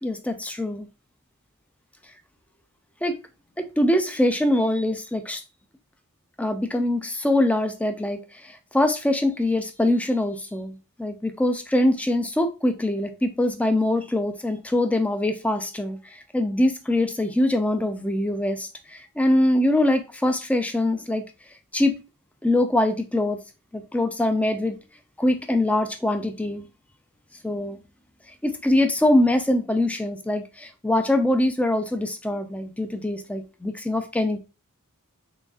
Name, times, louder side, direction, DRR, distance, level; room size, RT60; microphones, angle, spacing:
voice 1, 0.0-0.9 3.0-3.2 3.6-5.4 6.4-21.2 21.7-22.0 22.4-23.4 23.7-24.8 25.2-26.7 27.4-27.8 28.4-34.4, left 1 dB, 5° left, 0.3 m, -23 dB
3.9 x 3.5 x 2.4 m
head